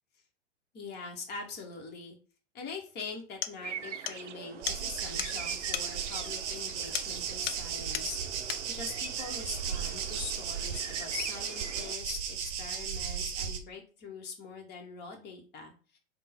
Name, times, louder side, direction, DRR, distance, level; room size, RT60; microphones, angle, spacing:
voice 1, 0.7-2.2 2.5-8.2 8.6-16.0, left 4 dB, 30° left, 2 dB, 1.1 m, -43 dB
sound 1, 2.8-2.9 3.4-3.6 4.1-4.2 4.7-4.8 5.2-5.3 5.7-5.9 6.9-7.2 7.5-7.7 7.9-8.1 8.5-8.7, left 10 dB, 55° left, 0.5 m, -35 dB
sound 2, 3.6-11.9, right 7 dB, 90° right, 0.5 m, -44 dB
sound 3, 4.6-13.6, right 7 dB, 45° right, 0.8 m, -36 dB
3.6 x 2.2 x 4.3 m, 0.35 s
hypercardioid pair, 100°, 35 cm